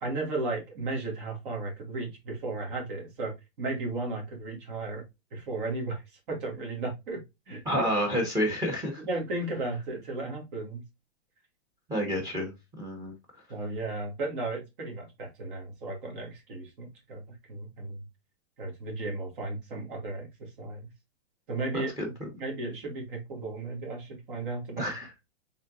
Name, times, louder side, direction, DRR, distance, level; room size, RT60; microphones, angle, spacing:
voice 1, 0.0-5.0 5.3-6.0 6.3-7.9 9.0-10.8 13.5-18.0 18.6-20.9 21.5-24.9, right 2 dB, 50° right, 2.3 m, -35 dB
voice 2, 7.6-9.0 11.9-13.1 21.7-22.1 24.8-25.1, equal, 10° right, 1.1 m, -29 dB
4.2 x 3.8 x 2.5 m
supercardioid pair, 160°, 33 cm